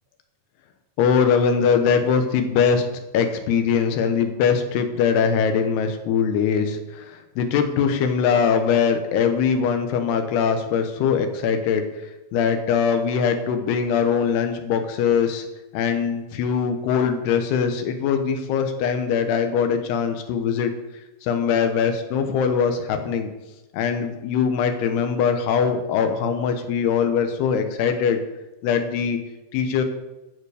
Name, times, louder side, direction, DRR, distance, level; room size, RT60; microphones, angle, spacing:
voice 1, 1.0-2.9 3.1-11.8 12.3-15.5 15.7-20.7 21.2-23.3 23.7-28.2 28.6-29.2 29.5-29.8, left 6 dB, 75° left, 7 dB, 3.1 m, -22 dB
14.0 x 7.4 x 5.0 m, 1.0 s
omnidirectional pair, 4.8 m